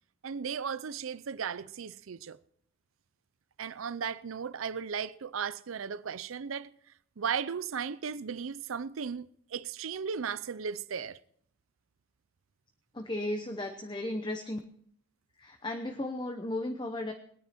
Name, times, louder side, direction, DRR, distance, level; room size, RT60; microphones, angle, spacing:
voice 1, 0.2-2.4 3.6-6.7 7.2-11.2, right 6 dB, 90° right, 0.5 m, -36 dB
voice 2, 12.9-14.6 15.4-17.1, left 1 dB, 20° left, 0.9 m, -35 dB
21.5 x 9.8 x 4.3 m
head